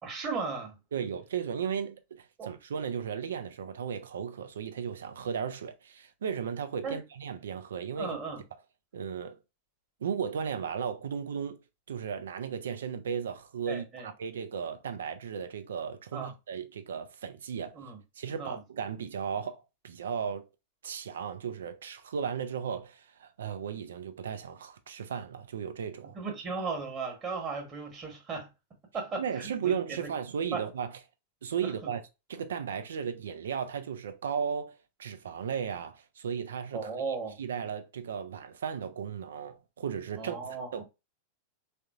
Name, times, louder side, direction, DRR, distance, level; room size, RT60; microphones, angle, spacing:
voice 1, 0.0-0.8 2.4-2.5 6.8-7.0 8.0-8.4 13.7-14.1 16.1-16.3 17.7-18.0 18.4-18.6 26.1-30.1 30.5-30.6 31.6-31.9 36.7-37.4 40.2-40.8, right 4 dB, 30° right, 1.1 m, -36 dB
voice 2, 0.9-8.2 8.9-9.4 10.0-11.6 11.9-17.8 18.2-20.5 20.8-26.2 29.2-30.9 31.4-32.0 32.3-40.4 40.7-40.8, right 7 dB, 65° right, 0.4 m, -35 dB
3.7 x 2.6 x 2.3 m
figure-of-eight pair, 90°, 0 cm